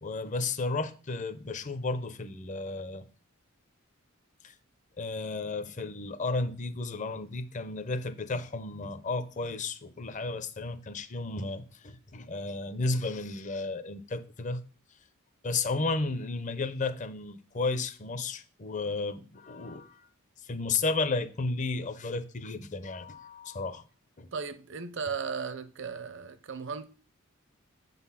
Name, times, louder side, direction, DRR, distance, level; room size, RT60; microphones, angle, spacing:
voice 1, 0.0-3.1 4.4-4.5 5.0-14.6 15.4-20.1 20.4-23.8 24.2-24.3, left 3 dB, 35° left, 0.6 m, -33 dB
voice 2, 24.3-26.8, right 5 dB, 55° right, 0.6 m, -36 dB
7.7 x 4.0 x 5.7 m
head